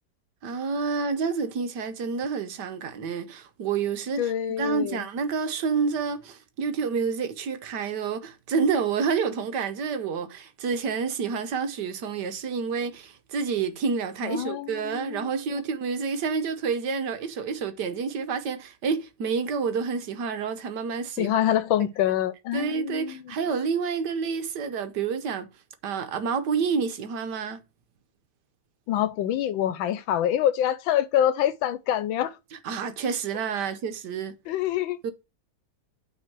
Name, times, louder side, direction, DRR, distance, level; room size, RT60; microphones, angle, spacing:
voice 1, 0.4-21.3 22.5-25.5 25.8-27.6 32.5-34.3 35.0-35.1, right 5 dB, 65° right, 1.3 m, -29 dB
voice 2, 4.2-5.1 14.2-15.6 21.2-23.4 28.9-32.4 34.5-35.0, left 11 dB, 80° left, 1.4 m, -26 dB
9.1 x 3.6 x 5.9 m
omnidirectional pair, 2.1 m